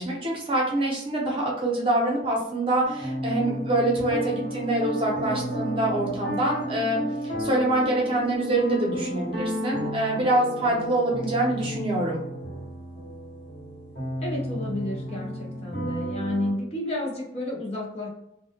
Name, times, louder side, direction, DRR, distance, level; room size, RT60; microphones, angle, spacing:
voice 1, 0.0-12.2, right 1 dB, 30° right, -2 dB, 0.7 m, -25 dB
sound 1, 2.8-16.5, right 1 dB, 60° left, 1.1 m, -32 dB
voice 2, 14.2-18.1, left 1 dB, 35° left, -2 dB, 0.6 m, -31 dB
2.2 x 2.1 x 2.7 m, 0.81 s
head